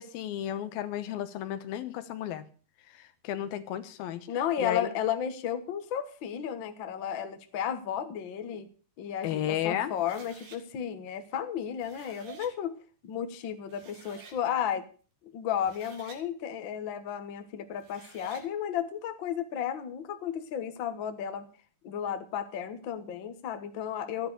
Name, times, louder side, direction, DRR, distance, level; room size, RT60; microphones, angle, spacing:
voice 1, 0.0-2.4 2.9-4.3 4.6-4.9 9.2-9.9, left 11 dB, 85° left, 11 dB, 2.9 m, -33 dB
voice 2, 4.3-8.7 9.0-12.8 13.0-14.9 15.2-21.5 21.8-24.3, left 9 dB, 65° left, 8 dB, 1.2 m, -33 dB
sound 1, 10.0-10.6 11.6-12.5 13.3-13.4 13.7-14.4 15.5-16.2 17.7-18.5, right 5 dB, 70° right, 3.8 m, -50 dB
13.0 x 10.0 x 6.6 m, 0.39 s
omnidirectional pair, 4.2 m